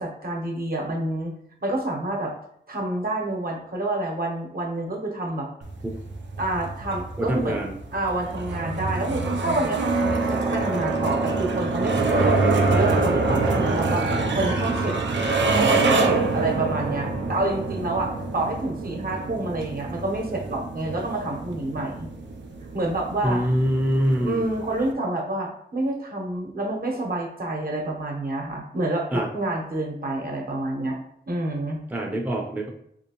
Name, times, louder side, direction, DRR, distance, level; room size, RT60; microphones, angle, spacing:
voice 1, 0.0-1.3 1.6-2.3 2.7-5.5 6.4-7.6 7.9-12.4 12.7-15.0 15.6-22.1 22.7-23.4 24.1-31.0 31.3-31.8, right 2 dB, 55° right, 0 dB, 0.9 m, -28 dB
sound 1, 5.6-24.9, right 3 dB, 80° right, 0.4 m, -26 dB
voice 2, 7.2-7.7 23.2-24.4 29.1-29.3 31.9-32.7, equal, 10° right, 1 dB, 0.5 m, -24 dB
3.2 x 2.7 x 2.9 m, 0.69 s
cardioid pair, 55°, 19 cm